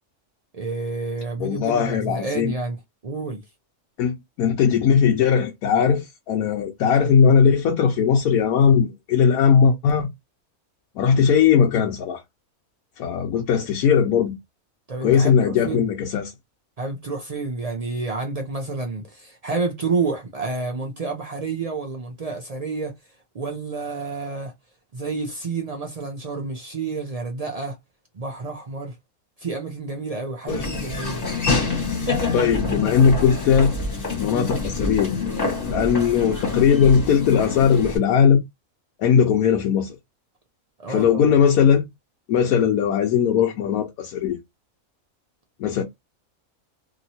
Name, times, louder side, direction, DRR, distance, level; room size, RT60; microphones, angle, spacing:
voice 1, 0.5-3.4 14.9-15.9 16.8-22.9 23.3-24.5 24.9-27.8 28.1-29.0 29.4-31.2 40.8-41.2, right 3 dB, 60° right, 0.3 m, -29 dB
voice 2, 1.4-2.5 4.0-10.1 11.0-12.2 13.0-14.4 15.0-16.3 30.5-30.6 32.3-33.7 34.2-35.1 35.7-38.4 39.0-40.0 40.9-41.9 42.3-44.4 45.6-45.8, left 7 dB, 90° left, 1.1 m, -19 dB
Laughter / Walk footsteps, 30.5-38.0, left 3 dB, 30° left, 1.3 m, -26 dB
2.8 x 2.8 x 2.7 m
omnidirectional pair, 1.5 m